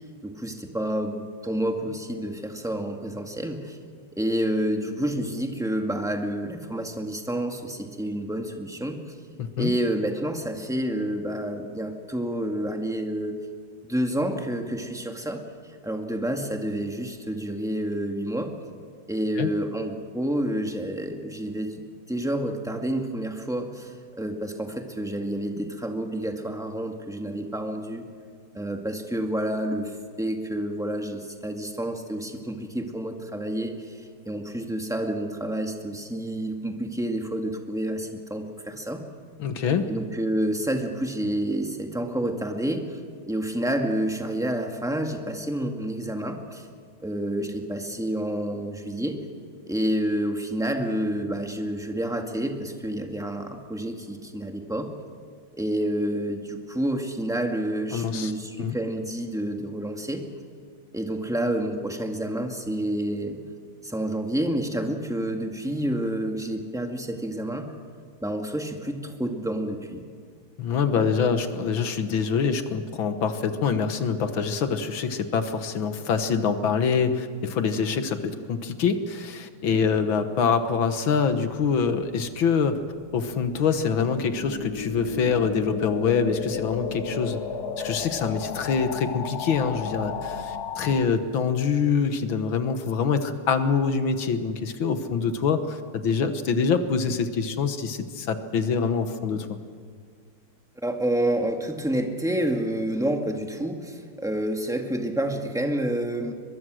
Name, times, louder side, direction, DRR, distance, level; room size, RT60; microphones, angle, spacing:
voice 1, 0.2-3.8 4.2-9.0 9.6-13.4 13.9-15.4 15.8-18.5 19.1-21.8 22.1-28.0 28.5-29.9 30.2-34.0 34.3-39.0 39.9-43.0 43.3-46.7 47.0-49.2 49.7-54.9 55.5-60.2 60.9-63.4 63.8-67.7 68.2-70.0 100.8-106.3, right 1 dB, ahead, 3 dB, 1.8 m, -29 dB
voice 2, 9.4-9.7 19.4-19.5 39.4-39.9 57.9-58.3 58.6-58.8 70.6-82.8 83.1-87.4 87.8-99.6, left 6 dB, 65° left, 9 dB, 2.0 m, -25 dB
sound 1, 82.0-91.0, left 6 dB, 50° left, 1.5 m, -34 dB
23.0 x 22.0 x 6.4 m, 2.1 s
omnidirectional pair, 2.4 m